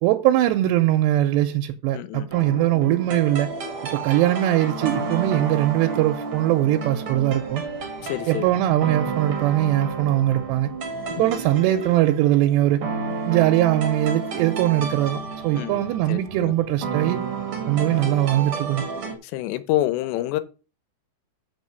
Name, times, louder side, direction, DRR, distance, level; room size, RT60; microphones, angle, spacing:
voice 1, 0.0-3.5 3.9-7.6 8.3-10.7 11.2-12.8 13.3-17.2 17.7-18.8, right 14 dB, 85° right, 2.9 m, -21 dB
voice 2, 1.9-2.3 8.0-8.4 11.2-11.4 15.5-16.5 19.2-20.4, left 15 dB, 85° left, 2.9 m, -28 dB
sound 1, 2.3-19.2, right 4 dB, 55° right, 1.5 m, -31 dB
6.9 x 5.6 x 6.6 m
omnidirectional pair, 4.9 m